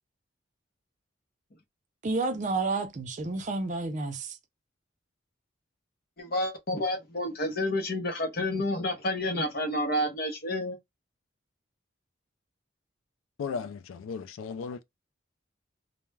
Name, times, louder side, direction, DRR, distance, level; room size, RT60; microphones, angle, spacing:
voice 1, 2.0-4.4, right 3 dB, 40° right, 0.4 m, -30 dB
voice 2, 6.2-10.8, left 1 dB, 50° left, 0.7 m, -29 dB
voice 3, 13.4-14.8, left 5 dB, 85° left, 0.3 m, -36 dB
2.2 x 2.1 x 3.2 m
head